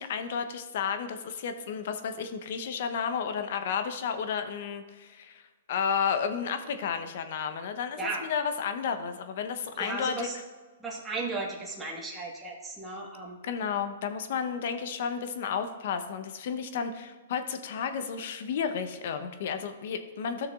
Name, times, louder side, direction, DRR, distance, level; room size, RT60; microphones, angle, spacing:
voice 1, 0.0-5.4 5.7-10.3 13.4-20.5, left 7 dB, 60° left, 8 dB, 0.9 m, -32 dB
voice 2, 9.8-10.3 10.8-13.4, right 3 dB, 10° right, -4 dB, 1.6 m, -35 dB
13.0 x 6.5 x 2.5 m, 1.3 s
hypercardioid pair, 135°, 0 cm